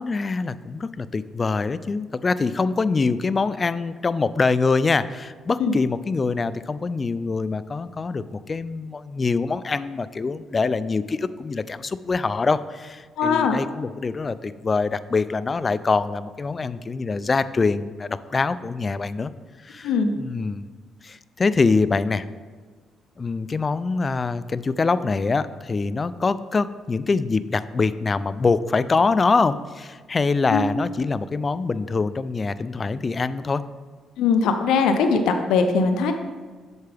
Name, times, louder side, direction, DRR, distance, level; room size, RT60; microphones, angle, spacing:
voice 1, 0.0-19.3 19.6-20.7 21.0-22.3 23.2-33.6, left 4 dB, 35° left, 15 dB, 0.3 m, -24 dB
voice 2, 13.2-13.6 19.8-20.2 30.5-30.6 34.2-36.1, left 5 dB, 85° left, 7 dB, 0.6 m, -20 dB
8.1 x 6.7 x 3.4 m, 1.5 s
cardioid pair, 90°, 0 cm